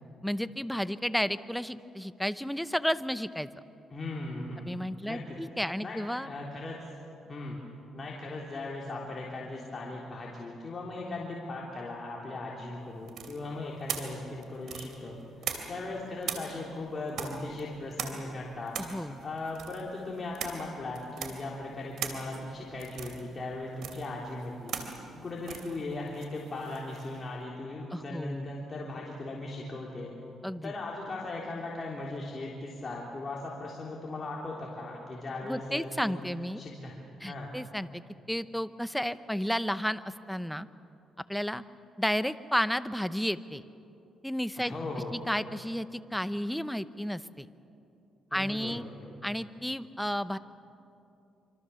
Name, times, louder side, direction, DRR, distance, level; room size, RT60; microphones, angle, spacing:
voice 1, 0.2-3.5 4.6-6.3 18.8-19.2 27.9-28.5 30.4-30.7 35.5-36.6 37.2-38.0 38.3-40.7 41.3-41.6 42.0-43.6 44.2-44.7 45.1-47.5 48.3-48.8 49.2-50.4, equal, ahead, 13 dB, 0.8 m, -32 dB
voice 2, 3.9-5.4 5.8-7.0 7.3-7.6 7.9-18.8 19.2-24.8 25.1-30.1 30.6-36.2 36.6-37.0 37.2-37.5 44.6-45.2 48.3-48.9 49.2-49.4, left 2 dB, 35° left, -3 dB, 3.5 m, -38 dB
sound 1, 13.1-15.9 16.2-27.2, right 7 dB, 70° right, 2.9 m, -40 dB
26.0 x 25.0 x 7.1 m, 2.8 s
cardioid pair, 90°, 0 cm